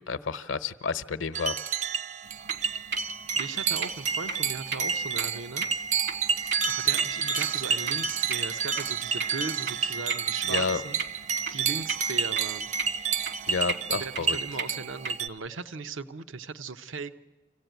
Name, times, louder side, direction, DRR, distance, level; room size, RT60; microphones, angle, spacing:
voice 1, 0.1-1.5 10.4-10.8 13.5-14.4, left 5 dB, 80° left, 14 dB, 0.8 m, -30 dB
sound 1, 1.3-15.3, right 6 dB, 40° right, 0.6 m, -30 dB
sound 2, 2.3-15.2, right 5 dB, 60° right, 1.2 m, -38 dB
voice 2, 3.4-5.7 6.6-11.0 11.5-12.7 13.9-17.2, right 4 dB, 80° right, 12 dB, 0.7 m, -38 dB
26.0 x 15.5 x 9.2 m, 1.2 s
head